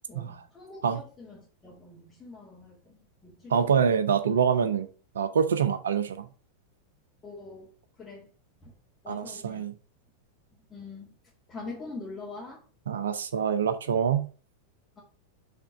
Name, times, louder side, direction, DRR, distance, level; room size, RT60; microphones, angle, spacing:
voice 1, 0.1-3.5 7.2-7.7 8.0-8.3 8.6-8.7 9.0-9.7 10.7-11.2 11.5-12.6, left 3 dB, 20° left, 2.0 m, -43 dB
voice 2, 3.5-4.9 5.1-6.3 9.1-9.7 12.9-14.3, right 7 dB, 65° right, 0.6 m, -25 dB
5.8 x 3.7 x 4.9 m
figure-of-eight pair, 90°, 0 cm